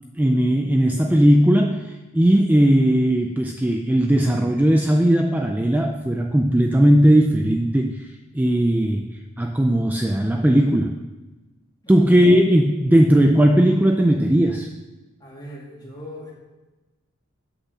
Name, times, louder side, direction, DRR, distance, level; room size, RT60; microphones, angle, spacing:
voice 1, 0.2-8.1 8.3-9.1 9.4-11.0 11.9-14.7, equal, 10° right, 4 dB, 0.3 m, -17 dB
voice 2, 15.2-16.3, equal, 20° left, -4 dB, 2.3 m, -39 dB
8.1 x 6.1 x 6.3 m, 1.1 s
head